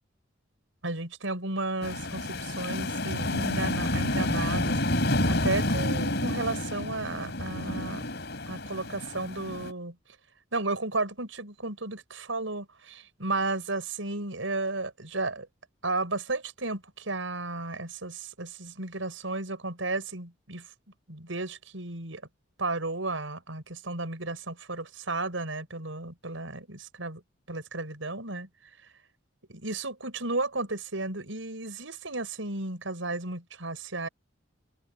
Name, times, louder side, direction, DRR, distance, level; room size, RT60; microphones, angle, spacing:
voice 1, 0.8-4.8 5.1-8.0 8.5-10.0 10.5-15.5 15.8-20.7 21.1-22.2 22.6-27.2 27.5-28.5 29.5-34.1, right 2 dB, 80° right, 5.7 m, -33 dB
sound 1, 1.8-9.7, left 1 dB, 60° left, 5.2 m, -29 dB
head